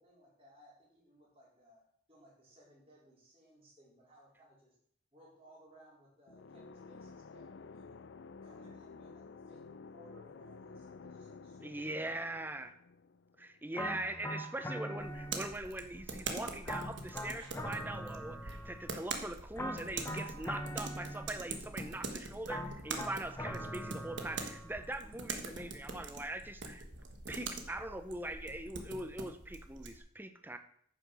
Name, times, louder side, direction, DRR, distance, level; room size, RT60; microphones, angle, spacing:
voice 1, 0.0-1.8 2.1-4.8 5.1-8.0 8.4-12.3, equal, 30° right, -5 dB, 4.5 m, -62 dB
sound 1, 6.3-13.9, left 4 dB, 75° left, 0.5 m, -52 dB
voice 2, 11.6-12.7 13.4-26.8 27.3-30.6, right 1 dB, 10° right, 9 dB, 0.6 m, -42 dB
sound 2, 13.7-15.8 16.6-19.0 19.6-21.6 22.5-24.9, equal, 15° left, 0.9 m, -42 dB
sound 3, 15.0-30.0, right 3 dB, 70° right, 1.4 m, -44 dB
9.7 x 6.6 x 6.2 m, 0.67 s
head